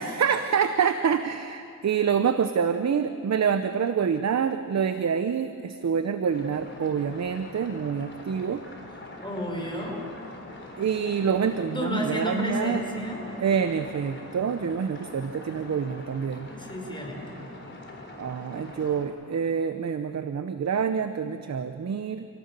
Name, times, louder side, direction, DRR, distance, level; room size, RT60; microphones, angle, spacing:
voice 1, 0.0-8.6 10.8-12.8 13.4-16.5 18.2-22.3, right 7 dB, 55° right, 9 dB, 0.8 m, -26 dB
sound 1, 6.3-19.1, left 2 dB, 35° left, 4.2 m, -44 dB
voice 2, 9.2-10.0 11.7-13.2 16.5-17.4, equal, 15° left, 0 dB, 5.4 m, -31 dB
28.0 x 17.5 x 6.8 m, 2.6 s
cardioid pair, 85°, 33 cm